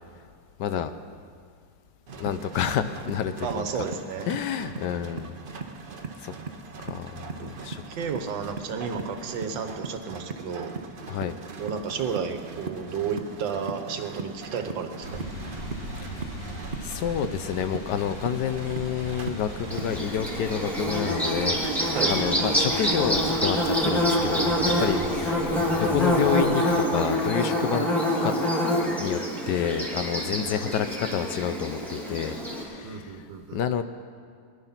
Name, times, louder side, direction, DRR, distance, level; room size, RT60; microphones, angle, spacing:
voice 1, 0.6-0.9 2.2-3.6 4.3-5.3 6.2-6.3 6.8-7.8 11.1-11.4 16.0-16.4 16.8-27.9 28.2-28.4 29.0-33.2 33.5-33.8, left 9 dB, 70° left, 10 dB, 1.2 m, -29 dB
sound 1, 2.1-20.0, right 4 dB, 40° right, 0.8 m, -39 dB
voice 2, 3.4-4.3 7.4-7.5 7.9-10.7 11.6-15.2 21.9-22.1 32.8-33.6, right 6 dB, 75° right, 8 dB, 1.7 m, -32 dB
sound 2, 15.0-26.4, equal, 30° left, 4.0 m, -39 dB
Bird / Buzz, 19.7-32.6, equal, ahead, 2.5 m, -26 dB
21.0 x 11.0 x 5.8 m, 2.1 s
omnidirectional pair, 2.1 m